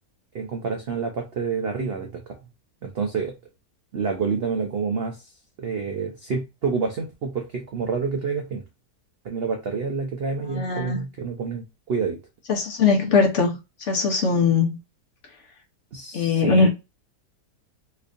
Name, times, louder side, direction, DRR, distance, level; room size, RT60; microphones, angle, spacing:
voice 1, 0.3-2.4 2.8-3.3 3.9-5.3 5.6-8.6 9.2-12.2 15.9-16.7, right 5 dB, 85° right, 0.5 m, -28 dB
voice 2, 10.4-11.0 12.5-13.5 13.9-14.8 16.1-16.7, left 4 dB, 50° left, 1.1 m, -20 dB
4.3 x 2.6 x 2.4 m
omnidirectional pair, 1.8 m